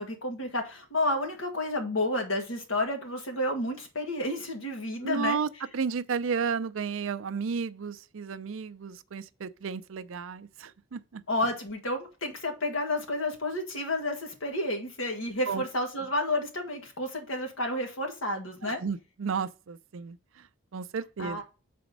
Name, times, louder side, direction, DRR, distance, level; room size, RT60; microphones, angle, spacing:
voice 1, 0.0-5.4 11.3-18.8 21.2-21.4, left 1 dB, 70° left, 1.8 m, -31 dB
voice 2, 5.0-5.5 5.7-11.2 15.5-15.6 18.6-20.2 20.7-21.4, right 6 dB, 70° right, 0.5 m, -33 dB
5.9 x 4.3 x 5.2 m
head